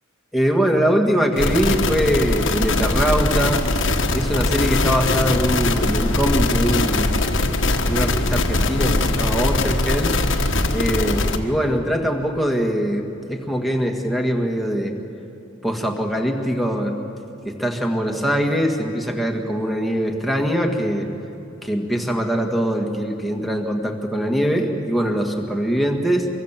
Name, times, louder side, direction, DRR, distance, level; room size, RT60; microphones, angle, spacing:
voice 1, 0.3-3.6 4.1-7.1 7.8-10.1 10.7-15.0 15.6-17.0 17.5-21.1 21.6-26.3, equal, ahead, 1 dB, 1.9 m, -22 dB
sound 1, 1.4-11.4, left 2 dB, 75° left, 1.5 m, -21 dB
25.5 x 23.0 x 7.5 m, 2.8 s
head